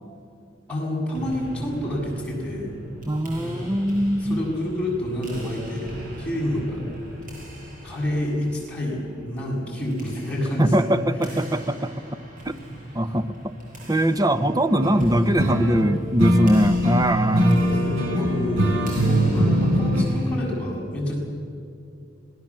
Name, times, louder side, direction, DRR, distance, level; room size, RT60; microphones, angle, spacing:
voice 1, 0.7-2.7 3.4-3.7 4.2-5.9 6.2-6.8 7.8-9.0 9.2-10.9 11.3-11.4 17.5-21.2, left 1 dB, 5° left, -4 dB, 7.6 m, -28 dB
sound 1, 1.1-20.6, equal, 45° right, 7.7 m, -38 dB
voice 2, 3.1-4.4 6.4-6.9 10.6-11.9 12.4-12.5 12.9-13.5 13.9-17.7, right 1 dB, 20° right, 11 dB, 0.8 m, -22 dB
sound 2, 14.7-20.0, equal, 85° right, 4.2 m, -22 dB
26.0 x 18.5 x 7.5 m, 2.5 s
head